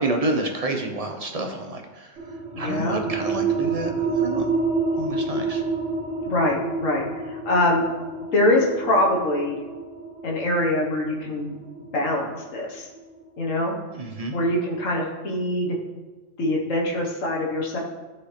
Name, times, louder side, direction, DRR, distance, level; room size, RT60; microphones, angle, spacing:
voice 1, 0.0-2.1 2.6-4.5 4.9-5.6 13.9-14.4, right 2 dB, 30° right, 3 dB, 0.9 m, -29 dB
sound 1, 2.2-13.4, right 4 dB, 65° right, 1.7 m, -29 dB
voice 2, 2.5-3.0 6.2-7.8 8.3-9.6 10.2-11.5 11.9-12.9 13.4-13.7 14.3-15.8 16.4-17.8, left 1 dB, 80° left, -2 dB, 1.6 m, -23 dB
13.0 x 4.9 x 3.3 m, 1.2 s
omnidirectional pair, 1.3 m